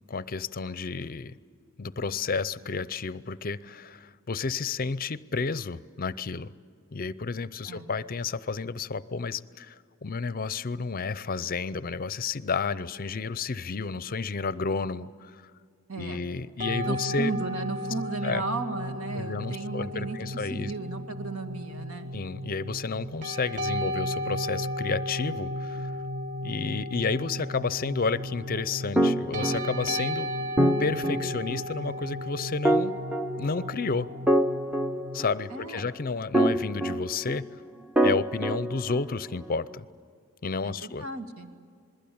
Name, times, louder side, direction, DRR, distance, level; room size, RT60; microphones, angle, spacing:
voice 1, 0.1-1.4 1.8-6.5 6.9-15.5 16.0-17.3 18.2-18.4 19.1-20.7 22.1-25.9 26.4-30.3 30.8-33.0 33.4-34.1 35.1-37.6 38.0-39.8 40.4-41.0, left 4 dB, 40° left, 16 dB, 0.6 m, -31 dB
voice 2, 15.9-16.2 16.8-22.1 35.5-35.9 40.6-41.5, right 4 dB, 75° right, 5 dB, 2.3 m, -35 dB
sound 1, 16.6-35.2, equal, 35° right, 1.1 m, -34 dB
sound 2, 29.0-30.2 30.6-31.7 32.7-33.9 34.3-35.7 36.3-37.5 38.0-39.4, right 1 dB, 5° right, 0.7 m, -26 dB
27.5 x 21.5 x 8.7 m, 2.1 s
head